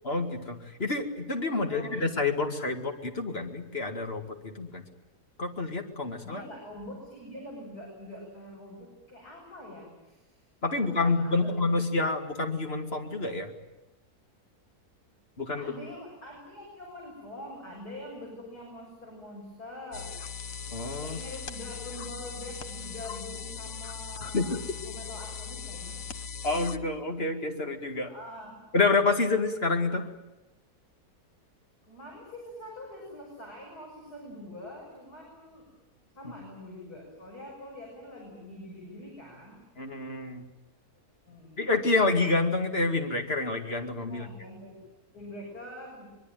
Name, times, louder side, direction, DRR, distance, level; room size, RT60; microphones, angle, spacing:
voice 1, 0.0-4.8 5.4-6.4 10.6-13.5 15.4-15.7 20.7-21.2 24.3-24.6 26.4-28.1 28.7-30.1 39.8-40.4 41.6-44.3, left 3 dB, 40° left, 4 dB, 2.5 m, -28 dB
voice 2, 1.5-1.9 6.2-10.4 10.7-11.5 15.6-20.2 21.0-24.6 24.8-26.0 28.0-28.6 31.8-35.7 36.2-39.6 41.3-41.7 44.0-44.8 45.1-46.1, left 1 dB, 80° left, -2 dB, 7.6 m, -44 dB
sound 1, 19.9-26.8, left 6 dB, 60° left, 1.4 m, -39 dB
25.0 x 22.0 x 9.3 m, 1.0 s
omnidirectional pair, 1.7 m